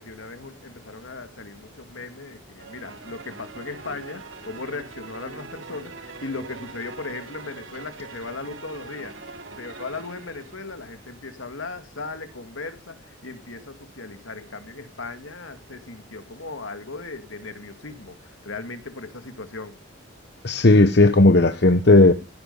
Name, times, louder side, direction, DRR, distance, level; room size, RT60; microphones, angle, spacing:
voice 1, 0.0-9.1 9.6-19.7, left 3 dB, 80° left, 2.1 m, -37 dB
sound 1, 2.6-11.1, right 4 dB, 70° right, 2.7 m, -42 dB
voice 2, 20.4-22.1, left 2 dB, 55° left, 1.0 m, -15 dB
15.5 x 13.0 x 5.5 m
head